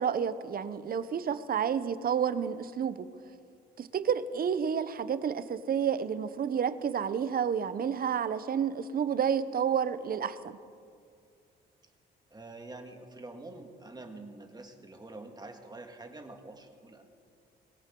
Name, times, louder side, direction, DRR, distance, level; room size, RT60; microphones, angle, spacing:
voice 1, 0.0-3.1 3.8-10.6, right 7 dB, 45° right, 14 dB, 0.8 m, -30 dB
voice 2, 12.3-17.1, right 2 dB, 20° right, 4 dB, 1.8 m, -46 dB
21.5 x 17.5 x 3.8 m, 2.3 s
cardioid pair, 90°, 20 cm